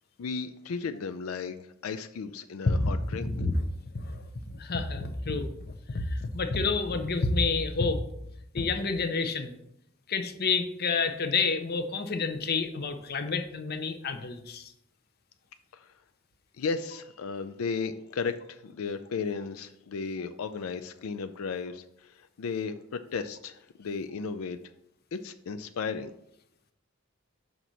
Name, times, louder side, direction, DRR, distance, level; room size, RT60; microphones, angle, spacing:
voice 1, 0.2-3.3 15.7-15.9 16.5-24.6 25.1-26.1, left 5 dB, 85° left, 9 dB, 0.4 m, -35 dB
voice 2, 3.2-3.5 3.9-5.5 5.9-8.0 8.5-9.5 10.1-14.7, left 4 dB, 50° left, 8 dB, 0.7 m, -29 dB
5.9 x 3.9 x 6.1 m, 0.78 s
head